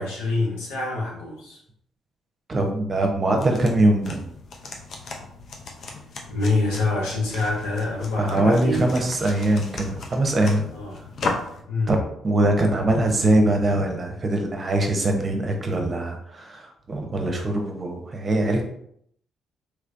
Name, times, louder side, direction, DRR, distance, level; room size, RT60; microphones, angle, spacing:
voice 1, 0.0-1.6 3.4-3.5 6.3-8.9 10.7-11.0 11.7-11.9, left 2 dB, 90° left, -4 dB, 1.1 m, -26 dB
voice 2, 2.5-4.2 8.2-10.6 11.9-12.0 12.2-18.6, right 1 dB, 40° right, 3 dB, 0.8 m, -22 dB
sound 1, 3.3-11.6, left 3 dB, 60° left, 0.6 m, -36 dB
3.2 x 3.2 x 2.6 m, 0.69 s
hypercardioid pair, 50°, 0 cm